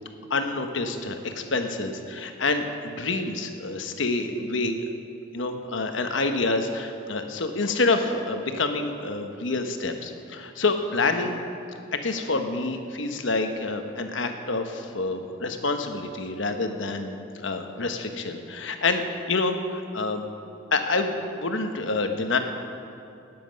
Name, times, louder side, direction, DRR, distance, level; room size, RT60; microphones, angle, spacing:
voice 1, 0.3-4.8 5.3-11.4 11.9-20.3 20.7-22.4, left 3 dB, 75° left, 6 dB, 1.1 m, -27 dB
18.5 x 7.7 x 5.3 m, 2.8 s
head